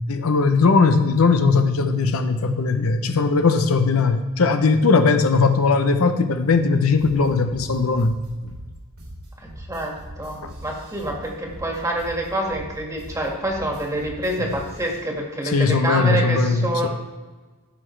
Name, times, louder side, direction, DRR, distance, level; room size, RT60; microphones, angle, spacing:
voice 1, 0.1-8.1 8.4-8.5 10.4-10.5 15.4-16.9, left 4 dB, 75° left, 8 dB, 0.7 m, -19 dB
sound 1, 7.0-15.0, equal, 75° right, 2.9 m, -40 dB
voice 2, 9.4-16.9, right 1 dB, 15° right, -1 dB, 1.8 m, -27 dB
14.0 x 5.8 x 3.3 m, 1.3 s
head